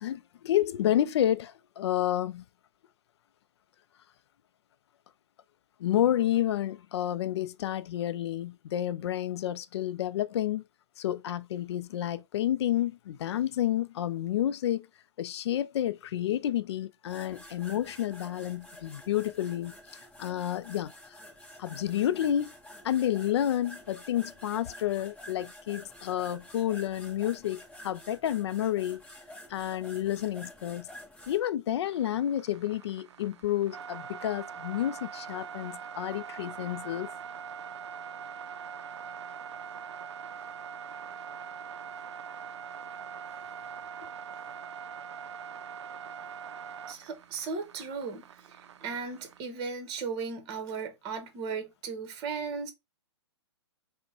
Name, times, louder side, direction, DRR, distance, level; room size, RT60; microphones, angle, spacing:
voice 1, 0.0-2.4 5.8-10.6 11.0-14.9 15.2-19.7 20.2-21.2 21.6-22.5 22.8-29.0 29.5-30.9 31.3-37.1, left 11 dB, 65° left, 0.4 m, -30 dB
sound 1, 17.1-31.4, left 1 dB, 5° left, 1.1 m, -49 dB
sound 2, 31.8-49.4, right 7 dB, 70° right, 0.4 m, -43 dB
voice 2, 46.9-52.7, right 5 dB, 30° right, 1.0 m, -36 dB
5.1 x 2.1 x 2.8 m
hypercardioid pair, 130°, 15 cm